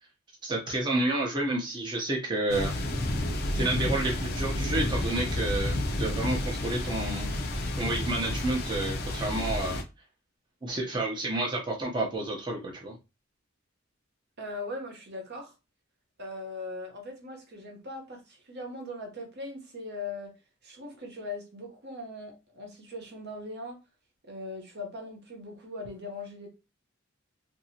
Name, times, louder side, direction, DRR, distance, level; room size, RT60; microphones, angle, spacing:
voice 1, 0.4-2.7 3.5-7.4 7.8-9.8 10.6-13.0, right 2 dB, 20° right, 0.7 m, -30 dB
sound 1, 2.5-9.8, left 1 dB, 50° left, 0.6 m, -30 dB
voice 2, 14.4-15.5 16.2-20.3 20.6-23.8 24.2-26.5, left 2 dB, 55° right, 1.0 m, -40 dB
2.9 x 2.7 x 2.8 m
head